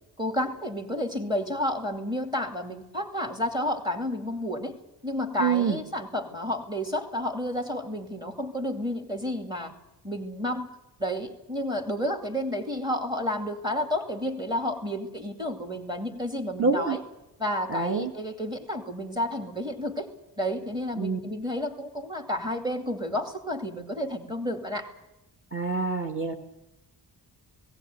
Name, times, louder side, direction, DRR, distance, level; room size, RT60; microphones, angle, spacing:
voice 1, 0.2-4.8 5.0-9.7 10.0-10.7 11.0-17.0 17.4-20.1 20.4-24.9, left 1 dB, 10° right, 5 dB, 2.5 m, -31 dB
voice 2, 5.4-5.8 16.6-17.0 17.7-18.1 21.0-21.2 25.5-26.3, right 5 dB, 30° right, 2 dB, 1.5 m, -26 dB
18.5 x 18.0 x 9.3 m, 0.93 s
wide cardioid pair, 170°, 42 cm